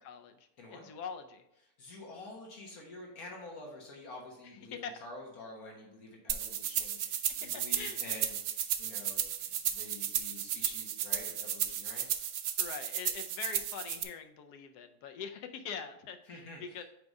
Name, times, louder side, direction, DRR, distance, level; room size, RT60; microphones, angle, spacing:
voice 1, 0.0-0.4 0.7-1.4 4.7-5.0 7.7-8.0 12.6-16.8, left 6 dB, 90° left, 6 dB, 1.2 m, -43 dB
voice 2, 0.6-0.9 1.8-12.1 16.3-16.8, left 2 dB, 70° left, -1 dB, 1.7 m, -48 dB
sound 1, 6.3-14.0, right 10 dB, 70° right, 0.9 m, -34 dB
5.1 x 4.7 x 5.2 m, 0.82 s
omnidirectional pair, 1.6 m